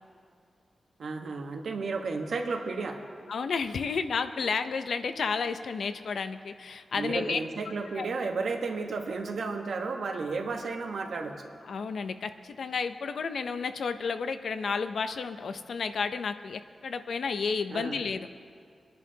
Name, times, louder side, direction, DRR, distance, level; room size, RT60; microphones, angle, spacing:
voice 1, 1.0-3.0 6.9-11.3 17.7-18.0, right 4 dB, 70° right, 3 dB, 1.1 m, -33 dB
voice 2, 3.3-7.4 8.0-8.1 11.7-18.3, left 5 dB, 70° left, 10 dB, 0.5 m, -31 dB
24.5 x 10.5 x 2.8 m, 2.3 s
wide cardioid pair, 170°, 0 cm